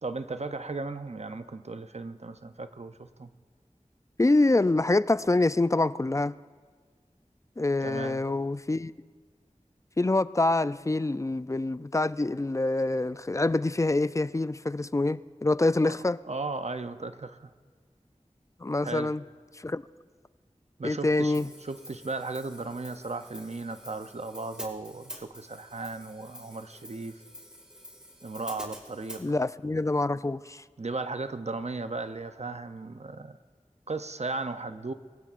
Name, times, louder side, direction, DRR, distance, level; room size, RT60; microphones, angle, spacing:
voice 1, 0.0-3.3 7.8-8.2 15.8-16.0 16.3-17.5 18.8-19.1 20.8-27.2 28.2-29.2 30.8-33.4 33.9-34.9, right 3 dB, 60° right, 10 dB, 0.6 m, -36 dB
voice 2, 4.2-6.3 7.6-8.9 10.0-16.2 18.6-19.2 19.6-19.8 20.8-21.5 29.2-30.6, left 2 dB, 25° left, 16 dB, 0.3 m, -26 dB
Hi-hat, 21.3-29.2, equal, 5° right, 2.1 m, -47 dB
23.5 x 15.0 x 2.5 m, 1.5 s
wide cardioid pair, 45°, 13 cm